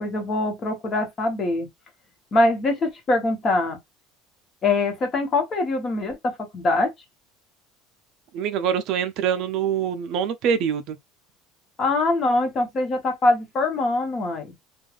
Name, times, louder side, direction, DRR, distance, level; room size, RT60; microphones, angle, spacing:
voice 1, 0.0-1.7 2.3-3.8 4.6-6.9 11.8-14.5, left 2 dB, 25° left, 1.0 m, -23 dB
voice 2, 8.3-11.0, right 8 dB, 50° right, 0.4 m, -24 dB
3.2 x 2.3 x 2.4 m
cardioid pair, 155°, 0 cm